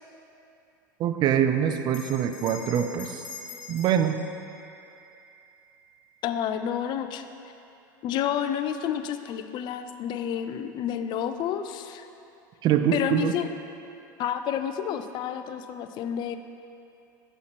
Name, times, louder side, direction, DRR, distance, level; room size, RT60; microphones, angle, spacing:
voice 1, 1.0-3.2 3.7-4.2 12.6-13.3, right 9 dB, 40° right, 8 dB, 0.5 m, -24 dB
Bell, 1.9-6.7, left 5 dB, 70° left, 1.1 m, -45 dB
voice 2, 6.2-7.2 8.0-12.1 12.9-13.5 14.2-16.4, left 9 dB, 45° left, 9 dB, 0.4 m, -30 dB
8.0 x 5.6 x 3.0 m, 2.8 s
hypercardioid pair, 90°, 11 cm